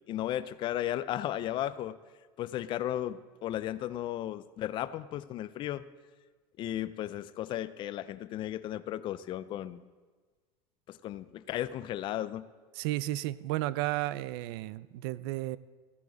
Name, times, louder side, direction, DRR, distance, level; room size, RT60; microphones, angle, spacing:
voice 1, 0.1-2.0 2.4-5.8 6.6-9.8 10.9-12.5, left 12 dB, 40° left, 16 dB, 0.4 m, -35 dB
voice 2, 12.7-15.6, right 16 dB, 75° right, 18 dB, 0.4 m, -33 dB
15.0 x 9.6 x 4.0 m, 1.4 s
cardioid pair, 140°, 13 cm